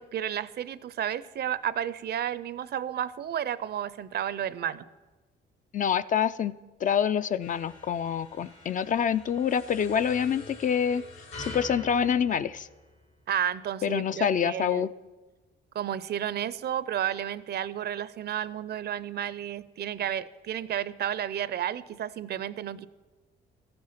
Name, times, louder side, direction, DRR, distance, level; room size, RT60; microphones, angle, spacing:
voice 1, 0.0-4.9 13.3-14.9 15.7-22.9, right 10 dB, 55° right, 17 dB, 0.5 m, -32 dB
voice 2, 5.7-6.5 6.8-11.0 11.4-12.7 13.8-14.9, left 8 dB, 40° left, 14 dB, 0.4 m, -26 dB
sound 1, 7.4-13.2, left 2 dB, 75° left, 4.5 m, -46 dB
13.5 x 7.7 x 5.7 m, 1.2 s
cardioid pair, 90°, 20 cm